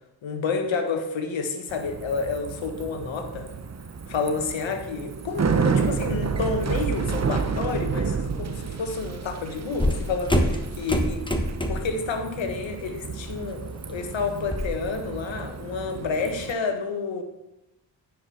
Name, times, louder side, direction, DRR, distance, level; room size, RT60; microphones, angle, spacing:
voice 1, 0.2-3.5 4.1-11.2 11.7-17.2, left 4 dB, 75° left, 6 dB, 1.5 m, -29 dB
Bicycle, 1.7-16.5, right 5 dB, 35° right, 0.9 m, -30 dB
sound 1, 9.8-12.0 12.4-12.7 13.1-14.8, left 1 dB, 10° left, 1.4 m, -26 dB
9.7 x 5.4 x 6.3 m, 0.91 s
supercardioid pair, 50°, 46 cm